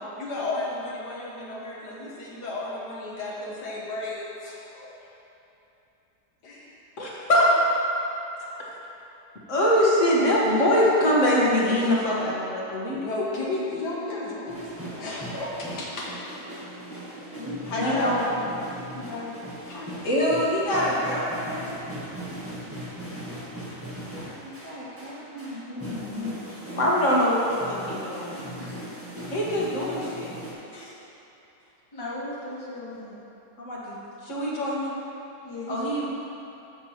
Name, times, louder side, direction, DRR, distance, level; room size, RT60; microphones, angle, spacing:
voice 1, 0.2-4.9 6.4-6.7 10.5-12.4 12.9-16.1 17.6-18.4 19.7-19.9, left 2 dB, 75° left, -4 dB, 1.7 m, -33 dB
voice 2, 7.0-7.5 9.5-13.0 17.4-18.1 20.0-22.7 24.2-28.4 29.3-30.3 33.6-35.0 35.7-36.2, equal, 50° left, -5 dB, 1.7 m, -25 dB
sound 1, 14.5-30.5, right 1 dB, 10° right, 1.5 m, -39 dB
voice 3, 17.6-18.3 18.9-19.4 28.5-28.8 30.7-30.9 31.9-33.2 35.4-35.9, left 1 dB, 15° left, -8 dB, 1.7 m, -34 dB
13.5 x 6.7 x 3.0 m, 3.0 s
omnidirectional pair, 1.8 m